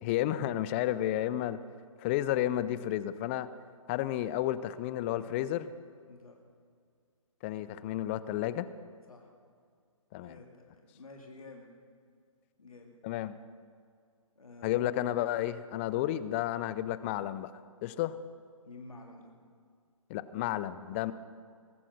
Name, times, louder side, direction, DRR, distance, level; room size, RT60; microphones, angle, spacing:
voice 1, 0.0-1.6 2.0-3.5 3.9-5.7 7.4-8.7 10.1-10.3 13.0-13.3 14.6-17.5 17.8-18.2 20.1-21.1, left 13 dB, 20° left, 15 dB, 0.4 m, -31 dB
voice 2, 6.1-6.4 9.1-9.3 10.2-11.7 12.6-13.0 14.4-15.0 18.6-19.3, left 2 dB, 90° left, 1 dB, 2.1 m, -50 dB
20.5 x 7.6 x 6.3 m, 2.1 s
hypercardioid pair, 140°, 18 cm